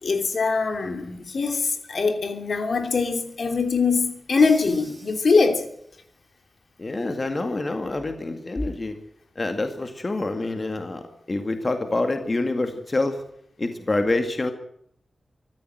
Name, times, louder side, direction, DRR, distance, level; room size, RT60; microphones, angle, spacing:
voice 1, 0.0-5.6, left 4 dB, 65° left, 3.0 m, -22 dB
Crash cymbal, 4.4-6.0, right 1 dB, 5° right, 7.1 m, -46 dB
voice 2, 6.8-8.9 9.4-13.2 13.6-14.5, left 2 dB, 35° left, 2.2 m, -26 dB
24.5 x 14.0 x 7.9 m
wide cardioid pair, 140°, 0 cm